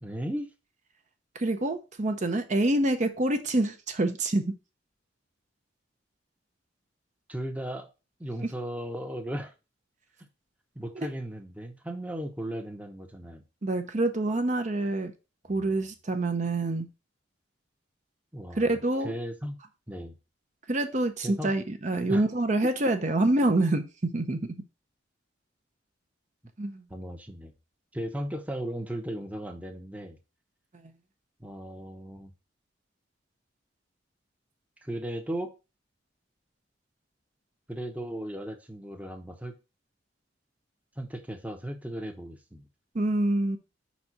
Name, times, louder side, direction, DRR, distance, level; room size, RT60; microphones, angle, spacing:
voice 1, 0.0-0.5 7.3-7.9 8.2-9.5 10.7-13.4 15.5-15.7 18.3-18.7 19.0-19.6 19.9-20.1 21.2-21.5 21.9-22.2 26.9-27.5 27.9-30.2 31.4-32.3 34.8-35.5 37.7-39.5 41.0-42.7, right 1 dB, 10° right, 0.8 m, -36 dB
voice 2, 1.3-4.6 8.4-8.5 13.6-15.1 15.5-16.9 18.6-19.1 20.7-24.5 26.6-26.8 42.9-43.6, right 2 dB, 40° right, 0.7 m, -26 dB
5.4 x 4.2 x 6.0 m
head